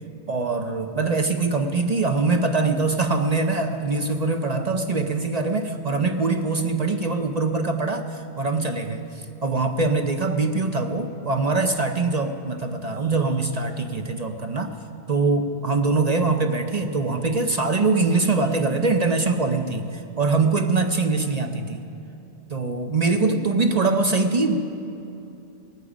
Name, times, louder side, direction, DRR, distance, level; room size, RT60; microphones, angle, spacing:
voice 1, 0.3-14.7 15.1-21.8 22.5-24.6, right 3 dB, 40° right, 5 dB, 0.8 m, -23 dB
18.5 x 14.0 x 5.0 m, 2.9 s
omnidirectional pair, 1.1 m